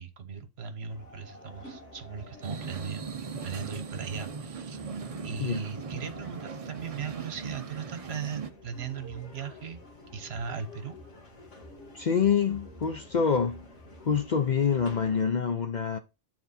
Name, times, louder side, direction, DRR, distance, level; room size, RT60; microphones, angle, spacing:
voice 1, 0.0-3.0 3.4-9.8 10.1-11.0, right 6 dB, 60° right, 1.2 m, -38 dB
sound 1, 0.7-10.6, right 2 dB, 15° right, 2.4 m, -56 dB
sound 2, 0.9-15.3, left 1 dB, 80° left, 2.0 m, -50 dB
sound 3, 2.4-8.5, right 5 dB, 40° right, 0.6 m, -39 dB
voice 2, 11.9-13.7 14.0-16.0, left 6 dB, 50° left, 0.6 m, -26 dB
9.2 x 4.1 x 4.2 m
omnidirectional pair, 1.2 m